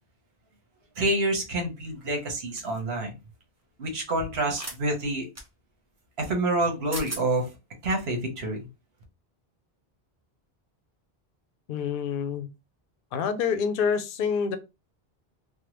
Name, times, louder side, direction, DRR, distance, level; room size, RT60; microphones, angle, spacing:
voice 1, 1.0-3.1 3.8-5.3 6.2-7.5 7.8-8.7, right 2 dB, 80° right, 2 dB, 1.2 m, -27 dB
sound 1, 2.6-2.8 4.5-4.8 5.3-5.5 6.6-6.7 6.9-7.2, right 2 dB, 20° right, 0.5 m, -36 dB
voice 2, 11.7-12.5 13.1-14.6, left 6 dB, 65° left, 10 dB, 0.7 m, -27 dB
3.4 x 2.2 x 3.0 m, 0.26 s
omnidirectional pair, 1.0 m